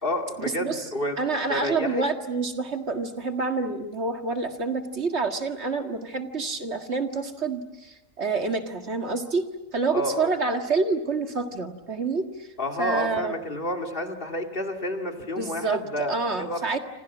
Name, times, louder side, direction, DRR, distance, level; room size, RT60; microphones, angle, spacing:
voice 1, 0.0-1.2 1.5-2.1 9.9-10.3 12.6-16.8, left 1 dB, 40° left, 4 dB, 2.7 m, -30 dB
voice 2, 1.2-9.5 9.7-12.5 12.8-13.3 15.4-16.8, right 4 dB, 55° right, 6 dB, 2.2 m, -28 dB
28.5 x 26.5 x 7.3 m, 1.0 s
omnidirectional pair, 1.4 m